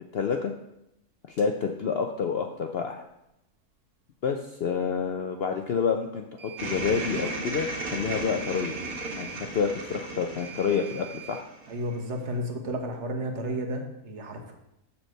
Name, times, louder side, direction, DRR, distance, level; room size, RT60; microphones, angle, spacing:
voice 1, 0.1-0.5 1.3-3.0 4.2-8.8 9.2-11.5, left 6 dB, 65° left, 5 dB, 0.6 m, -28 dB
sound 1, 1.4-1.5 6.4-7.5 8.4-9.5 10.4-11.5, right 15 dB, 90° right, 1.4 m, -45 dB
sound 2, 6.6-12.0, right 2 dB, 65° right, 1.8 m, -35 dB
voice 2, 11.7-14.5, equal, 50° right, 3 dB, 1.3 m, -32 dB
7.1 x 4.5 x 6.5 m, 0.85 s
omnidirectional pair, 1.6 m